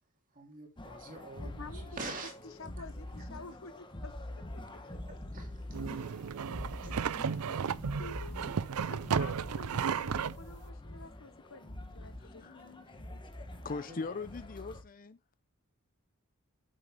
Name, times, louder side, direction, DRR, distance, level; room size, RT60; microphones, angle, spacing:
voice 1, 0.3-1.7 2.0-2.3 4.7-4.8 5.3-5.5 13.8-14.0, right 3 dB, 40° right, 3.1 m, -44 dB
sound 1, 0.8-14.8, left 1 dB, 20° left, 1.3 m, -45 dB
voice 2, 1.4-5.2 5.9-6.0 6.5-7.0 7.3-7.6 8.0-8.4 8.9-13.2, left 3 dB, 65° left, 1.1 m, -51 dB
sound 2, 5.7-10.4, right 6 dB, 80° right, 0.5 m, -34 dB
voice 3, 12.2-12.6 12.9-13.0 13.6-15.2, left 4 dB, 40° left, 0.5 m, -40 dB
9.3 x 7.9 x 3.7 m
head